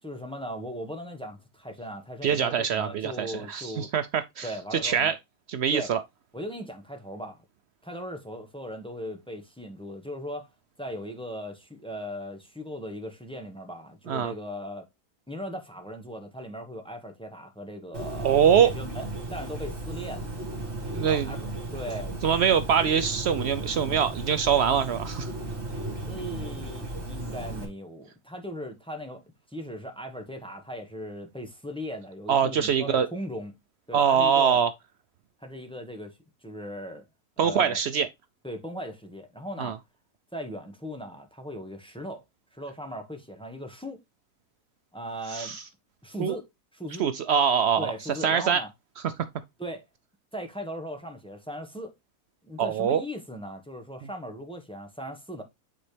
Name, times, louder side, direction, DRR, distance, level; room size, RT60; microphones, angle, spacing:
voice 1, 0.0-3.9 4.4-5.1 5.7-5.9 6.3-7.4 7.8-10.5 10.8-14.8 15.3-20.3 21.0-22.1 26.1-33.5 33.9-34.6 35.4-37.0 37.4-37.8 38.4-39.8 40.3-42.2 42.5-44.0 44.9-45.5 46.0-46.5 46.7-47.1 47.8-48.7 49.6-49.8 50.3-51.9 52.4-55.4, equal, 5° left, 1.1 m, -38 dB
voice 2, 2.2-5.2 5.5-6.0 14.1-14.3 18.2-18.7 20.9-21.3 22.2-25.3 32.3-33.1 33.9-34.7 37.4-38.1 39.6-39.8 45.3-45.6 46.2-46.4 47.0-47.9 48.2-48.6 52.6-53.0, right 8 dB, 85° right, 0.5 m, -23 dB
Bird, 17.9-27.7, right 1 dB, 40° right, 2.6 m, -35 dB
8.7 x 4.2 x 3.3 m
omnidirectional pair, 1.7 m